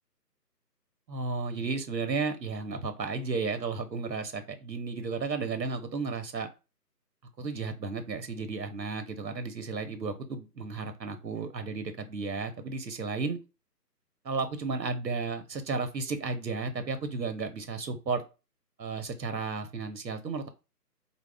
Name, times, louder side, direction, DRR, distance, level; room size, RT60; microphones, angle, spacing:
voice 1, 1.1-6.5 7.4-13.4 14.2-18.2 18.8-20.5, right 4 dB, 80° right, 8 dB, 1.1 m, -33 dB
4.6 x 2.4 x 3.4 m, 0.29 s
figure-of-eight pair, 165°, 50 cm